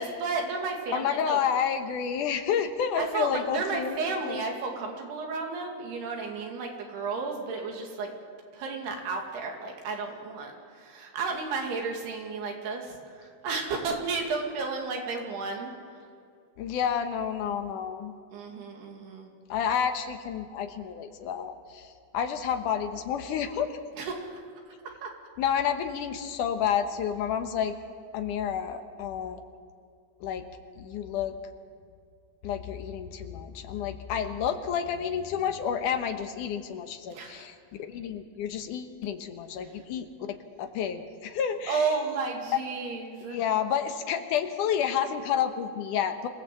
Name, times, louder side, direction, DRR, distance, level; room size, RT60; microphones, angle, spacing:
voice 1, 0.0-1.4 3.0-8.1 8.5-15.7 18.3-19.3 24.0-24.7 25.0-25.1 37.1-37.5 39.6-39.7 41.7-43.4, right 4 dB, 85° right, 1 dB, 4.5 m, -33 dB
voice 2, 0.9-4.4 16.6-18.1 19.5-21.9 22.1-23.8 25.4-27.8 28.1-29.4 30.2-30.5 30.8-31.4 32.4-41.9 43.3-46.3, left 8 dB, 65° left, 6 dB, 2.4 m, -30 dB
26.0 x 17.0 x 7.7 m, 2.3 s
omnidirectional pair, 4.5 m